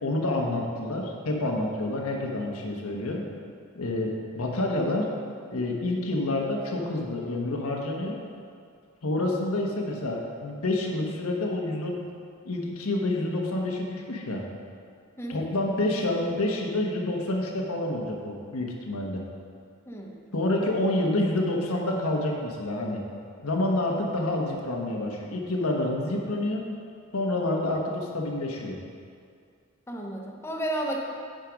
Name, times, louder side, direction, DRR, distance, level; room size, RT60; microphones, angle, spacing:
voice 1, 0.0-3.2 3.7-5.1 5.5-8.2 9.0-12.0 12.4-14.4 15.3-19.2 20.3-23.0 23.4-26.6 27.1-28.8, left 1 dB, 90° left, 0 dB, 1.2 m, -28 dB
voice 2, 19.9-20.2 29.9-31.0, right 1 dB, 10° left, -1 dB, 0.7 m, -32 dB
9.0 x 5.0 x 5.1 m, 2.3 s
head